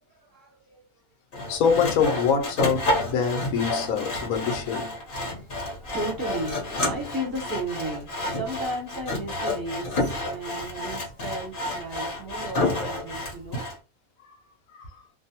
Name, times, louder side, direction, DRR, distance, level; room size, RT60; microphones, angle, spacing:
voice 1, 0.2-0.8 3.1-3.2 4.0-4.2 4.6-5.5 5.8-13.6, right 1 dB, 20° right, 0.7 m, -35 dB
Sawing, 1.3-13.8, left 1 dB, 40° left, 0.9 m, -30 dB
voice 2, 1.5-4.9 14.2-14.4 14.7-15.0, left 6 dB, 75° left, 1.0 m, -25 dB
2.5 x 2.1 x 2.8 m
omnidirectional pair, 1.6 m